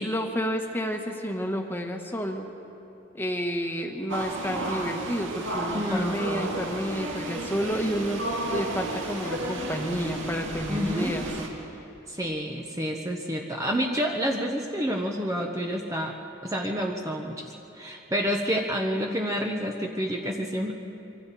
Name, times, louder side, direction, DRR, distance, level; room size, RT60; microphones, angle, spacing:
voice 1, 0.0-2.5 3.1-11.3, equal, 10° left, 3 dB, 1.3 m, -30 dB
sound 1, 4.1-11.5, right 1 dB, 70° right, 2.5 m, -32 dB
voice 2, 5.7-6.5 10.7-11.2 12.1-16.1 16.4-20.7, equal, 15° right, 1 dB, 1.0 m, -29 dB
25.5 x 24.5 x 4.2 m, 2.9 s
head